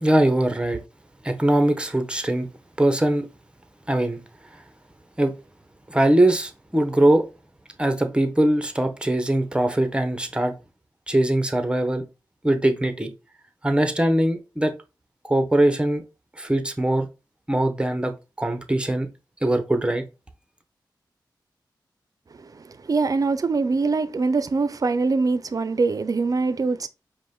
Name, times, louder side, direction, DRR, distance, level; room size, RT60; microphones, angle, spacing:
voice 1, 0.0-0.8 1.2-2.5 2.8-3.3 3.9-4.2 5.2-5.3 5.9-7.2 7.8-10.5 11.1-12.0 12.4-13.1 13.6-14.7 15.2-16.0 16.4-17.1 17.5-19.1 19.4-20.1, right 1 dB, 10° right, 0.8 m, -21 dB
voice 2, 22.3-26.9, right 4 dB, 50° right, 0.4 m, -23 dB
4.9 x 2.2 x 3.7 m
cardioid pair, 55°, 8 cm